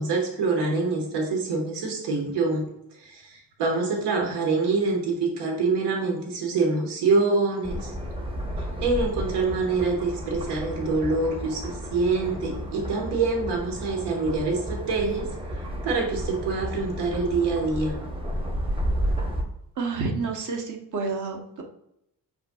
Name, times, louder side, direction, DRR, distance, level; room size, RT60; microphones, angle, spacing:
voice 1, 0.0-2.7 3.0-7.9 8.8-15.3 15.8-17.9, right 3 dB, 85° right, 1 dB, 1.4 m, -25 dB
sound 1, 7.6-19.4, equal, 15° right, 0.8 m, -32 dB
voice 2, 19.8-21.6, right 4 dB, 50° right, 2 dB, 1.0 m, -29 dB
5.4 x 4.2 x 2.3 m, 0.79 s
cardioid pair, 115°, 40 cm